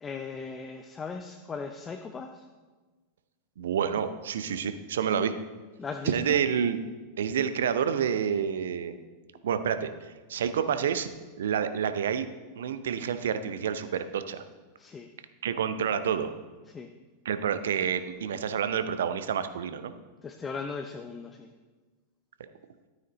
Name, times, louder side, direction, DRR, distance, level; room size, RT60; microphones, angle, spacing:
voice 1, 0.0-2.5 5.8-6.4 14.8-15.1 16.7-16.9 20.2-21.5, left 5 dB, 20° left, 5 dB, 0.6 m, -38 dB
voice 2, 3.6-5.3 6.1-6.8 7.2-8.9 9.4-11.1 11.4-12.3 12.6-14.4 15.4-16.3 17.3-19.9, right 8 dB, 60° right, 11 dB, 0.6 m, -28 dB
12.0 x 9.2 x 3.1 m, 1.3 s
figure-of-eight pair, 90°, 0 cm